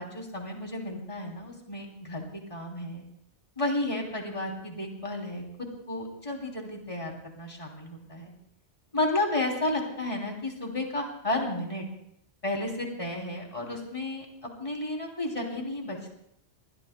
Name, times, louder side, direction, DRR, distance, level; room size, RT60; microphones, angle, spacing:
voice 1, 0.0-3.0 3.6-8.3 8.9-11.9 12.4-16.1, left 2 dB, 30° left, 0 dB, 3.2 m, -32 dB
28.5 x 21.5 x 2.2 m, 0.73 s
omnidirectional pair, 1.1 m